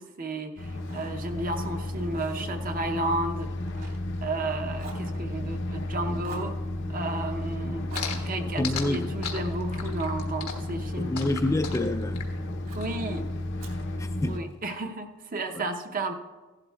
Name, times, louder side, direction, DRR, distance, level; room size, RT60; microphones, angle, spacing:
voice 1, 0.0-3.5 4.2-6.6 6.9-11.1 12.7-13.2 14.3-16.1, right 2 dB, 40° right, 0.7 m, -33 dB
sound 1, 0.6-14.4, left 1 dB, 55° left, 0.7 m, -33 dB
Fire, 0.8-4.5 4.8-5.8 6.2-6.6 7.9-10.3 10.8-11.9 12.7-13.0 13.6-14.7, right 3 dB, 65° right, 2.3 m, -49 dB
sound 2, 7.9-12.9, left 7 dB, 90° left, 1.3 m, -36 dB
voice 2, 8.6-9.1 11.0-12.3 14.0-14.4 15.5-15.6, left 1 dB, 15° left, 0.4 m, -28 dB
16.0 x 11.5 x 2.3 m
head